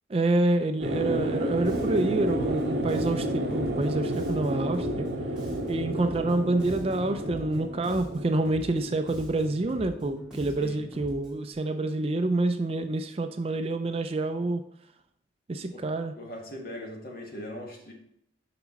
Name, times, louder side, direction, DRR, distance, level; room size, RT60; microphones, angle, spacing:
voice 1, 0.1-5.1 5.7-14.6 15.5-16.1, right 2 dB, 30° right, 8 dB, 0.4 m, -27 dB
sound 1, 0.8-10.5, right 1 dB, 60° right, 1.0 m, -31 dB
Bass guitar, 1.6-11.5, right 1 dB, 5° right, 2.2 m, -44 dB
voice 2, 16.2-17.9, left 1 dB, 50° left, 1 dB, 1.4 m, -40 dB
5.9 x 5.9 x 4.1 m, 0.73 s
head